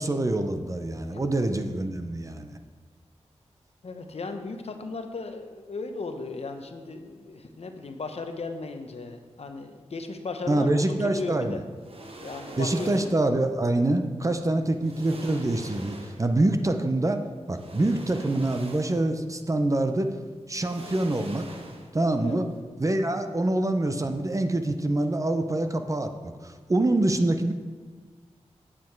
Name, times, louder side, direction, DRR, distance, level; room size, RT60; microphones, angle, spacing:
voice 1, 0.0-2.6 10.5-11.6 12.6-17.2 17.5-20.1 20.5-21.5 21.9-22.4 22.8-27.5, right 2 dB, 25° right, 7 dB, 0.7 m, -25 dB
voice 2, 3.8-11.6 12.2-13.1 14.5-14.6 22.2-22.4, left 3 dB, 60° left, 6 dB, 0.8 m, -36 dB
sound 1, 11.8-13.3 14.3-14.4 14.8-16.4 17.5-19.2 19.6-19.7 20.5-22.1 22.4-22.5, right 2 dB, 55° right, 1.1 m, -44 dB
8.5 x 7.5 x 4.5 m, 1.5 s
wide cardioid pair, 90°, 12 cm